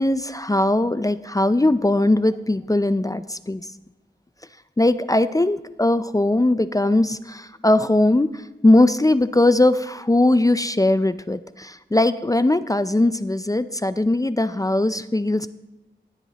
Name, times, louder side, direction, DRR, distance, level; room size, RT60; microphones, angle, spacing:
voice 1, 0.0-3.7 4.8-15.5, left 1 dB, 20° left, 13 dB, 0.4 m, -20 dB
18.0 x 8.0 x 2.9 m, 1.0 s
wide cardioid pair, 50°, 19 cm